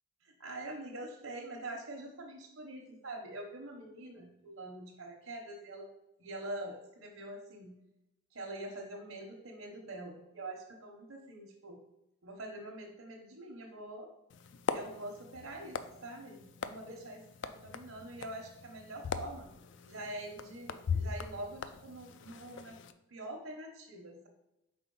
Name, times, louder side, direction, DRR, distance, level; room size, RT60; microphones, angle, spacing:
voice 1, 0.2-5.9 6.2-7.8 8.3-11.8 12.2-14.1 14.7-19.5 19.9-22.8 23.1-24.3, right 1 dB, 75° right, -2 dB, 0.9 m, -45 dB
sound 1, 14.3-22.9, left 6 dB, 55° left, 0.3 m, -41 dB
4.3 x 4.1 x 5.4 m, 0.91 s
head